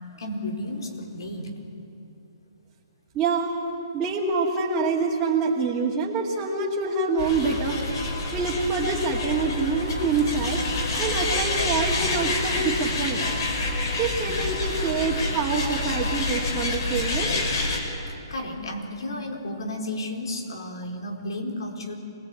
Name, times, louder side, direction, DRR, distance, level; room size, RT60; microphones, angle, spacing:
voice 1, 0.2-1.5 18.3-21.9, left 1 dB, 80° left, 3 dB, 4.4 m, -32 dB
voice 2, 3.1-3.5 3.9-7.8 8.3-10.6 11.0-13.3 14.0-17.3, right 4 dB, 15° right, -7 dB, 2.3 m, -26 dB
sound 1, 7.2-17.8, left 2 dB, 55° left, 5.4 m, -27 dB
26.0 x 19.0 x 9.1 m, 2.8 s
hypercardioid pair, 165°, 2 cm